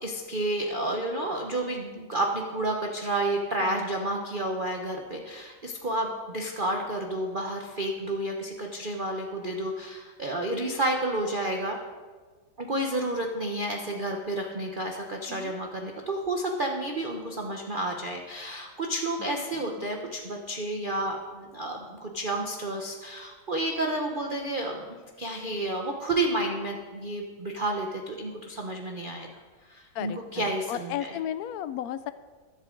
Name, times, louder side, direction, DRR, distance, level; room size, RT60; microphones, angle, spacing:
voice 1, 0.0-11.8 12.6-31.1, right 1 dB, 35° right, 1 dB, 0.9 m, -31 dB
voice 2, 29.9-32.1, left 11 dB, 70° left, 13 dB, 0.9 m, -34 dB
21.5 x 8.1 x 3.9 m, 1.4 s
omnidirectional pair, 2.0 m